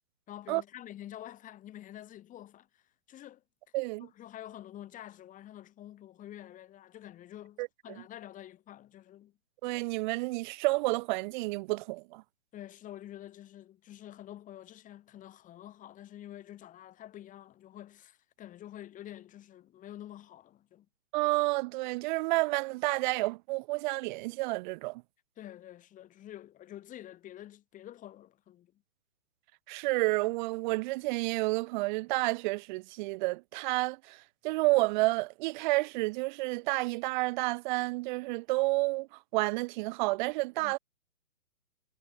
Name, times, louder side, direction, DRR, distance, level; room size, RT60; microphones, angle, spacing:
voice 1, 0.3-2.8 3.1-3.4 4.0-9.3 12.5-20.9 25.4-28.8 40.6-40.7, left 12 dB, 20° left, 7.7 m, -48 dB
voice 2, 3.7-4.1 7.6-7.7 9.6-12.2 21.1-25.0 29.7-39.1 39.3-40.8, right 23 dB, 35° right, 5.2 m, -30 dB
hypercardioid pair, 140°, 40 cm